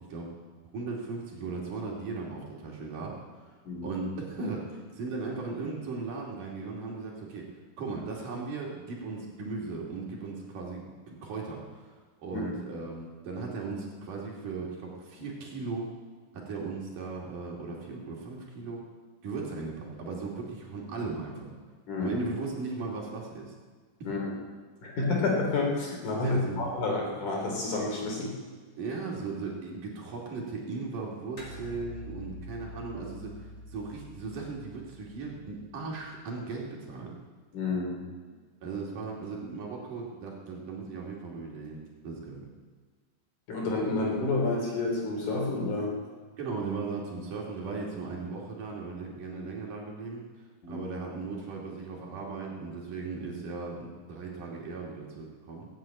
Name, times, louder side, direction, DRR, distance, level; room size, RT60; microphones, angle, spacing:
voice 1, 0.7-7.5 7.8-11.9 12.2-15.9 16.3-18.9 19.2-21.5 22.0-23.5 26.2-26.6 28.8-37.2 38.6-42.5 46.4-55.7, right 4 dB, 60° right, -2 dB, 4.0 m, -37 dB
voice 2, 21.9-22.2 24.0-24.3 24.8-28.3 37.5-38.0 43.5-46.0 50.6-50.8, left 3 dB, 55° left, -1 dB, 4.6 m, -29 dB
sound 1, 31.4-36.1, equal, 25° left, 2.5 m, -46 dB
17.5 x 8.6 x 9.0 m, 1.5 s
omnidirectional pair, 4.2 m